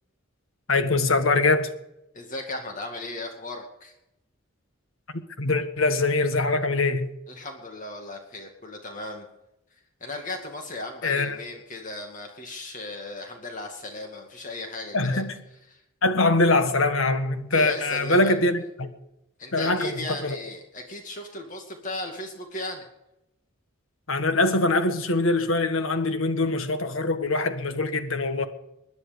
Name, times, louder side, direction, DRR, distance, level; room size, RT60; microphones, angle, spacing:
voice 1, 0.7-1.7 5.4-7.1 11.0-11.4 14.9-15.4 16.0-18.9 19.5-20.4 24.1-28.5, left 2 dB, 80° left, 1.7 m, -23 dB
voice 2, 2.1-3.9 7.3-9.3 10.0-15.2 15.7-15.8 17.5-18.3 19.4-22.9, left 2 dB, 40° left, 2.2 m, -36 dB
21.0 x 10.5 x 5.3 m
head